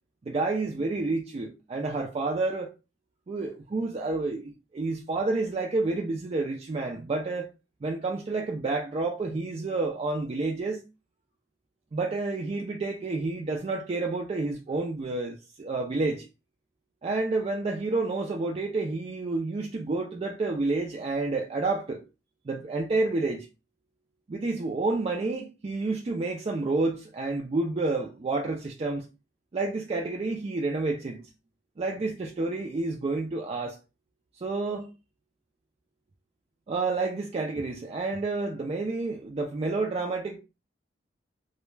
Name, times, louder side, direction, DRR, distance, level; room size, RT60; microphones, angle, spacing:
voice 1, 0.2-2.7 3.3-7.5 7.8-10.8 11.9-16.2 17.0-22.0 22.5-23.5 24.3-29.1 29.5-31.3 31.8-33.8 34.4-34.9 36.7-40.4, right 3 dB, 35° right, 0.3 m, -29 dB
2.2 x 2.0 x 3.1 m
head